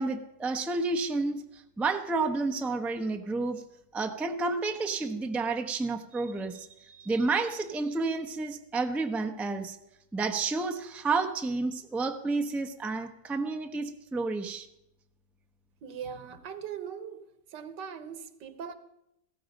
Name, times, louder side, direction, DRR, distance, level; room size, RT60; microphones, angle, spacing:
voice 1, 0.0-3.6 3.9-9.8 10.1-14.7, right 3 dB, ahead, 0.5 m, -30 dB
voice 2, 15.8-17.2 17.5-18.7, right 7 dB, 90° right, 1.7 m, -40 dB
16.0 x 14.0 x 5.3 m
omnidirectional pair, 1.9 m